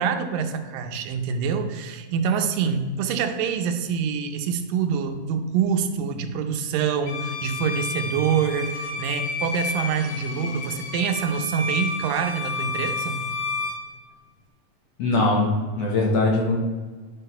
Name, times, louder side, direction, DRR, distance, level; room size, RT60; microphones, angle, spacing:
voice 1, 0.0-13.3, right 6 dB, 85° right, 7 dB, 2.4 m, -26 dB
Bowed string instrument, 7.1-13.8, left 3 dB, 75° left, 2.8 m, -30 dB
voice 2, 15.0-16.6, left 2 dB, 60° left, -2 dB, 2.0 m, -21 dB
11.0 x 4.0 x 5.4 m, 1.4 s
omnidirectional pair, 3.9 m